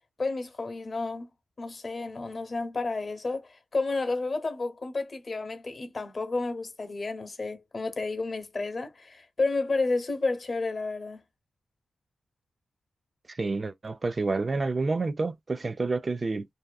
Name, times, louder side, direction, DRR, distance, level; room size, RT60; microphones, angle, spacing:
voice 1, 0.2-1.3 1.6-11.2, left 3 dB, 45° left, 0.9 m, -31 dB
voice 2, 13.3-16.5, right 3 dB, 40° right, 0.3 m, -29 dB
2.6 x 2.3 x 2.2 m
cardioid pair, 60°, 0 cm